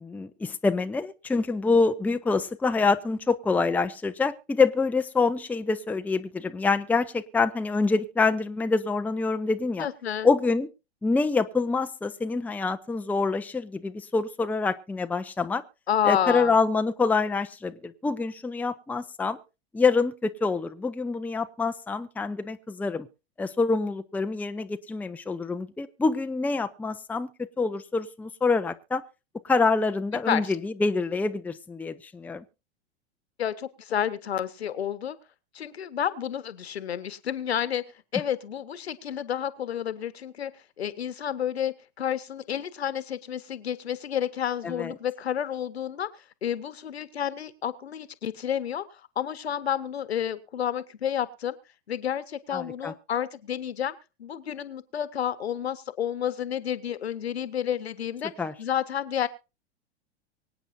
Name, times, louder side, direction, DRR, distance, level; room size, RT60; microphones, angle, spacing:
voice 1, 0.0-9.9 10.2-10.7 11.0-15.6 16.0-19.4 19.7-23.1 23.4-29.0 29.4-32.4 44.6-45.0 52.5-52.9 58.4-58.5, left 4 dB, 5° left, 9 dB, 0.7 m, -26 dB
voice 2, 9.8-10.3 15.9-16.6 30.3-30.5 33.4-35.2 35.5-37.8 38.1-40.5 40.8-46.1 46.4-51.5 51.9-58.3 58.6-59.3, left 9 dB, 70° left, 14 dB, 1.4 m, -30 dB
24.0 x 9.2 x 2.7 m, 0.29 s
figure-of-eight pair, 95°, 33 cm